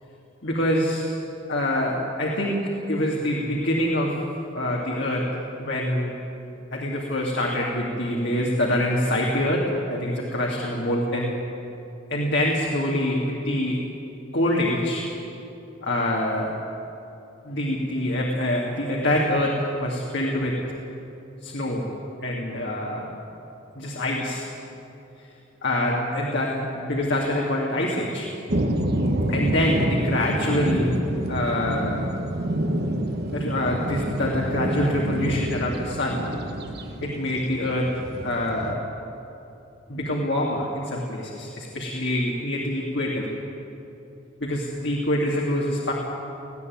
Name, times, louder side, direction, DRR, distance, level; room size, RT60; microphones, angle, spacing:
voice 1, 0.4-1.2 1.5-4.3 4.5-6.2 6.7-11.4 12.1-13.8 14.3-15.1 15.8-16.6 17.4-20.6 21.4-21.9 22.2-23.1 23.7-24.5 25.2-25.3 25.6-28.3 29.3-31.0 31.3-32.0 33.3-36.3 37.0-38.9 39.9-43.3 44.4-45.9, left 1 dB, 60° left, -3 dB, 2.5 m, -25 dB
sound 1, 28.5-38.7, right 1 dB, 55° right, 1.5 m, -28 dB
19.5 x 15.5 x 9.5 m, 2.8 s
head